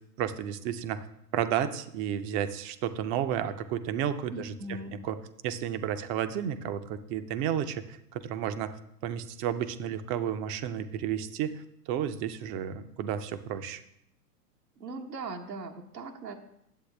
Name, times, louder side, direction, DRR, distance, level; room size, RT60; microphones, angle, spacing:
voice 1, 0.2-1.1 1.3-5.2 5.4-8.8 9.0-13.8, right 9 dB, 25° right, 11 dB, 0.5 m, -32 dB
voice 2, 4.3-5.0 14.8-16.4, right 2 dB, 85° right, 2 dB, 1.2 m, -39 dB
10.5 x 7.7 x 3.3 m, 0.75 s
hypercardioid pair, 105°, 49 cm